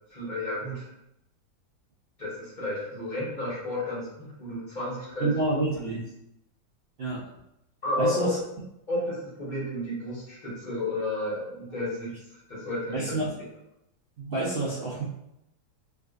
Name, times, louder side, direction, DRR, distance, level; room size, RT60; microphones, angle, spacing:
voice 1, 0.1-0.9 2.2-5.3 5.9-6.0 7.8-8.3 8.9-12.1 12.5-13.3, left 2 dB, 30° left, -9 dB, 1.2 m, -32 dB
voice 2, 5.2-6.0 7.0-7.2 8.0-8.4 12.9-13.3 14.2-15.0, right 2 dB, 85° right, -8 dB, 0.5 m, -28 dB
3.7 x 2.5 x 2.4 m, 0.85 s
omnidirectional pair, 1.9 m